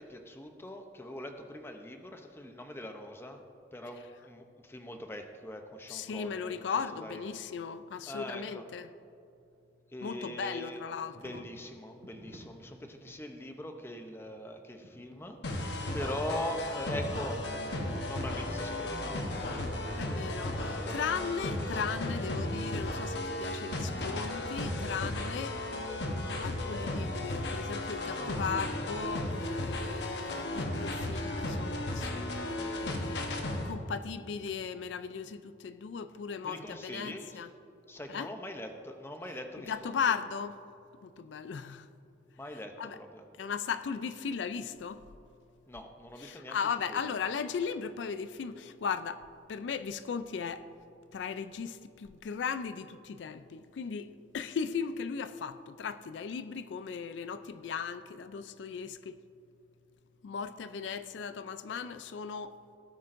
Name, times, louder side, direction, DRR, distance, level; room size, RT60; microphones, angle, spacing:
voice 1, 0.0-3.4 3.7-6.7 6.9-7.2 8.1-8.6 9.9-10.8 11.1-19.8 20.1-21.2 21.5-21.7 36.4-37.4 37.9-40.0 42.4-43.2 45.7-46.6 46.9-47.0, left 1 dB, 15° left, 0.6 m, -42 dB
voice 2, 5.9-8.9 10.0-11.4 20.0-25.6 26.4-37.5 38.1-38.3 39.6-40.6 41.0-41.9 42.8-43.0 43.4-45.0 46.2-49.2 49.5-50.7 51.1-59.2 60.2-62.6, left 6 dB, 90° left, 0.4 m, -37 dB
sound 1, 11.1-11.6 12.0-13.2 14.3-15.2 15.5-15.6 16.3-17.1 17.4-18.8 19.1-19.3 19.6-20.6 21.2-21.6 21.9-24.6, equal, 70° right, 1.7 m, -56 dB
sound 2, 15.4-33.7, left 1 dB, 70° left, 1.0 m, -35 dB
17.5 x 8.2 x 2.6 m
head